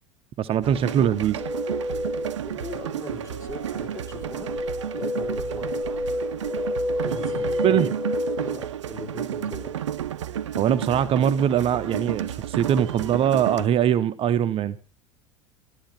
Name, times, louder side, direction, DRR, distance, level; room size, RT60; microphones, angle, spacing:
voice 1, 0.4-1.4 7.6-7.9 10.6-14.8, right 9 dB, 35° right, 11 dB, 0.8 m, -22 dB
sound 1, 0.6-13.7, right 10 dB, 75° right, 0.7 m, -32 dB
sound 2, 1.4-8.6, left 1 dB, 10° right, 2.4 m, -30 dB
voice 2, 2.4-4.5 4.9-5.9 7.0-8.0 8.4-9.7, left 3 dB, 20° left, 2 dB, 4.9 m, -39 dB
14.5 x 13.0 x 5.8 m, 0.37 s
figure-of-eight pair, 75°, 16 cm